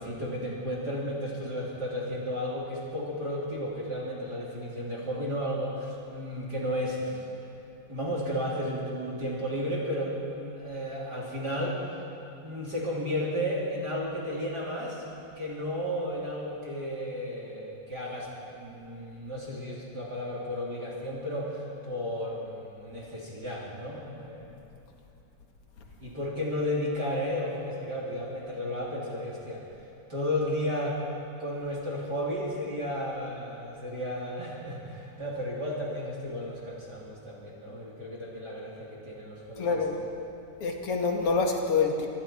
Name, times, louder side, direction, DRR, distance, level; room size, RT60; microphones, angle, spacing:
voice 1, 0.0-7.2 7.9-11.8 12.4-15.0 15.3-24.5 26.0-29.6 30.1-31.0 31.4-39.8, equal, 30° right, -4 dB, 3.4 m, -33 dB
voice 2, 39.6-40.1 40.6-42.1, left 4 dB, 45° left, 2 dB, 2.4 m, -26 dB
26.0 x 23.5 x 4.5 m, 2.9 s
omnidirectional pair, 3.9 m